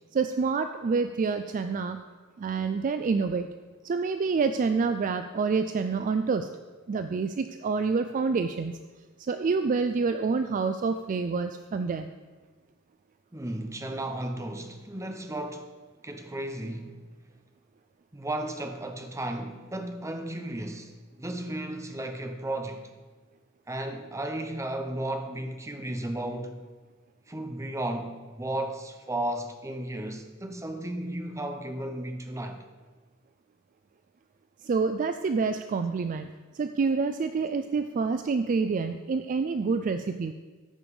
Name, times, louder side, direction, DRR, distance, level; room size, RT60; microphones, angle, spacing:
voice 1, 0.1-2.0 2.4-3.5 3.8-6.5 6.9-8.8 9.2-12.1 34.6-36.3 36.5-40.3, right 4 dB, 35° right, 0.3 m, -27 dB
voice 2, 13.3-15.7 16.0-17.0 18.1-22.9 23.7-26.6 27.3-32.6, right 1 dB, 15° right, 0.7 m, -34 dB
13.5 x 5.2 x 4.9 m
head